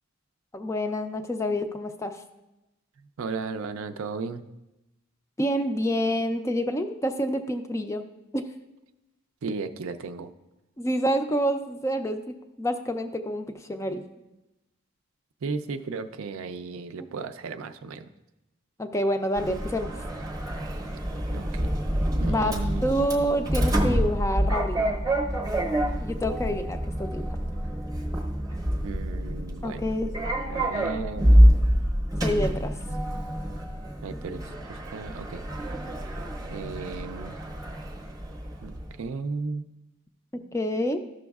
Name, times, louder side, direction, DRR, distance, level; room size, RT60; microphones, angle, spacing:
voice 1, 0.5-2.2 5.4-8.0 8.3-8.4 10.8-12.2 12.6-14.0 18.8-19.9 22.3-22.5 22.8-25.0 26.0-27.3 29.6-30.1 32.2-32.7 40.3-41.0, equal, 15° left, 7 dB, 0.3 m, -27 dB
voice 2, 3.2-4.4 9.4-10.3 15.4-18.1 21.3-21.7 22.2-22.9 28.8-29.9 30.5-31.3 34.0-34.4 34.7-35.4 36.5-37.4 38.6-39.6, right 4 dB, 75° right, 10 dB, 0.4 m, -35 dB
Sliding door, 19.4-39.0, equal, 15° right, 0.7 m, -26 dB
13.5 x 6.1 x 2.3 m, 0.97 s
head